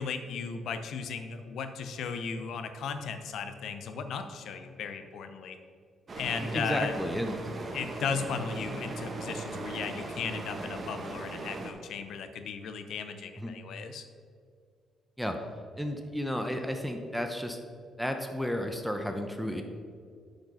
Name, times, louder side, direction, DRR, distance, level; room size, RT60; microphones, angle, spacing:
voice 1, 0.0-5.6 6.2-6.9 7.7-14.0, left 5 dB, 75° left, 8 dB, 0.8 m, -36 dB
sound 1, 6.1-11.7, right 2 dB, 40° right, 1.1 m, -39 dB
voice 2, 6.4-7.4 13.4-13.5 15.2-15.4 15.8-17.6 18.0-19.6, equal, ahead, 5 dB, 0.8 m, -32 dB
8.9 x 5.3 x 5.5 m, 2.2 s
cardioid pair, 90°, 0 cm